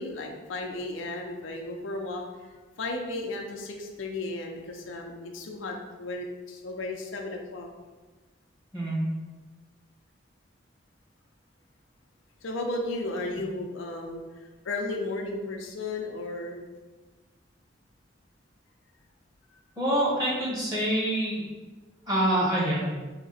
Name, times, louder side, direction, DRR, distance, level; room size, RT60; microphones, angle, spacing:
voice 1, 0.0-7.7 12.4-16.6 19.5-19.6, left 2 dB, 85° left, 2 dB, 0.6 m, -34 dB
voice 2, 19.8-21.4 22.1-22.8, right 1 dB, 20° right, -7 dB, 1.2 m, -26 dB
3.6 x 2.9 x 4.2 m, 1.2 s
head